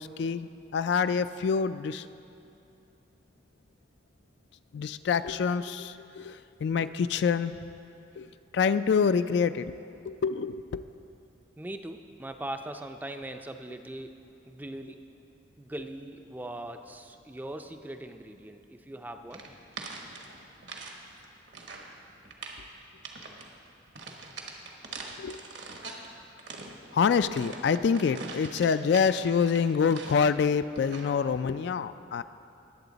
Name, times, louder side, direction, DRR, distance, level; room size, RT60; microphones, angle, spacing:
voice 1, 0.0-2.1 4.7-7.5 8.2-8.3 8.5-9.8 10.1-10.8 25.2-25.4 26.9-32.2, left 6 dB, 65° left, 12 dB, 0.3 m, -26 dB
voice 2, 11.6-14.2 14.5-15.2 15.6-19.4, right 1 dB, 10° right, 7 dB, 0.4 m, -40 dB
sound 1, 19.3-21.0 21.2-21.9 22.2-22.6 23.0-23.5 23.9-26.1 26.4-30.4 30.7-31.2, right 4 dB, 70° right, 1.2 m, -43 dB
20.0 x 7.8 x 4.0 m, 2.7 s
head